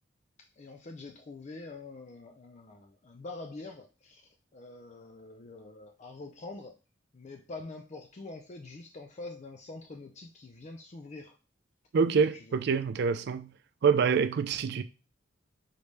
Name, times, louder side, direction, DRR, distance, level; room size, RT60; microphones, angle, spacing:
voice 1, 0.6-4.2 4.5-6.7 7.1-11.4 12.3-12.6 14.2-14.3, left 3 dB, 35° left, 0.5 m, -45 dB
voice 2, 11.9-13.5 13.8-14.8, right 5 dB, 60° right, 0.4 m, -26 dB
4.0 x 3.4 x 3.2 m
head